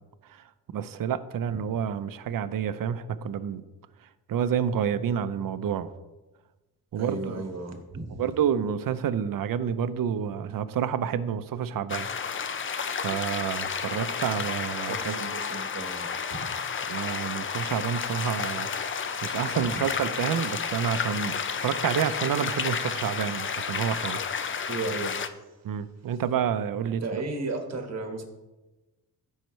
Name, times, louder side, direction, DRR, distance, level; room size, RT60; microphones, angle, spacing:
voice 1, 0.3-3.6 4.3-5.9 6.9-7.5 8.2-12.1 13.0-15.2 16.9-18.7 19.2-24.2 25.6-27.2, right 8 dB, 60° right, 12 dB, 0.6 m, -29 dB
voice 2, 6.9-8.2 14.9-16.5 19.6-19.8 24.7-25.3 27.0-28.2, right 3 dB, 40° right, 4 dB, 1.5 m, -34 dB
sound 1, 11.9-25.3, left 6 dB, 30° left, 0.5 m, -31 dB
13.5 x 5.6 x 3.2 m, 1.1 s
cardioid pair, 105°, 39 cm